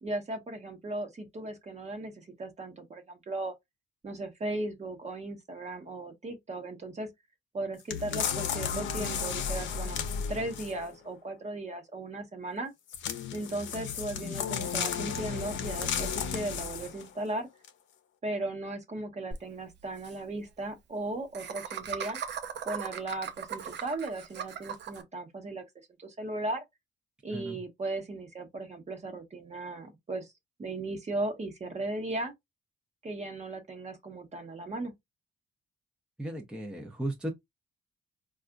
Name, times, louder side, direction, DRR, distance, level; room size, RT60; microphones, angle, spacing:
voice 1, 0.0-3.5 4.0-7.1 7.5-10.0 10.3-12.7 13.3-17.5 18.2-22.2 22.6-25.6 26.0-26.6 27.2-30.3 30.6-32.3 33.0-34.9, right 2 dB, 35° right, 1.0 m, -36 dB
sound 1, 7.9-10.9 12.9-17.1 17.6-17.7, left 7 dB, 70° left, 0.7 m, -33 dB
Laughter, 19.3-19.4 19.7-19.8 20.0-20.2 21.3-25.0, right 8 dB, 60° right, 0.7 m, -38 dB
voice 2, 36.2-37.3, right 1 dB, 5° right, 0.7 m, -35 dB
4.1 x 2.4 x 2.4 m
cardioid pair, 90°, 20 cm